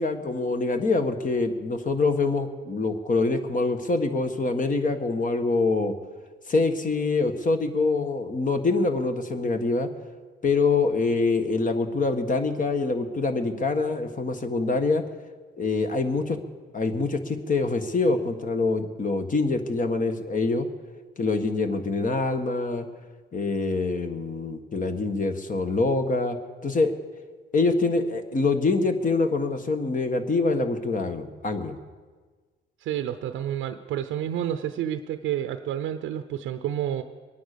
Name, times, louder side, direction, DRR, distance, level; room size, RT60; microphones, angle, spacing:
voice 1, 0.0-5.9 6.5-9.9 10.4-15.0 15.6-16.4 16.7-20.7 21.2-22.8 23.3-26.4 26.6-26.9 27.5-31.7, left 3 dB, 40° left, 7 dB, 1.7 m, -25 dB
voice 2, 32.8-37.0, right 10 dB, 85° right, 9 dB, 0.7 m, -29 dB
22.5 x 9.4 x 6.9 m, 1.4 s
cardioid pair, 90°, 20 cm